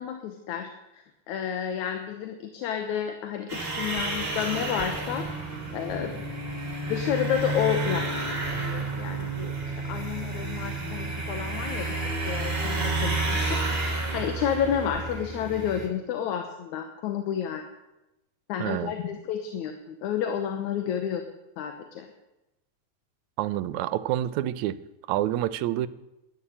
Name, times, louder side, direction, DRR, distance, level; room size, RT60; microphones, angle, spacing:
voice 1, 0.0-5.3 5.7-6.2 6.9-8.1 8.6-12.0 12.3-13.6 14.1-17.6 18.5-21.2 21.6-22.1, left 8 dB, 75° left, 6 dB, 2.4 m, -30 dB
sound 1, 3.5-15.9, right 2 dB, 20° right, 2.2 m, -30 dB
voice 2, 18.6-18.9 23.4-24.8 25.1-25.9, right 13 dB, 80° right, 16 dB, 1.9 m, -27 dB
11.0 x 11.0 x 8.8 m, 0.95 s
omnidirectional pair, 3.4 m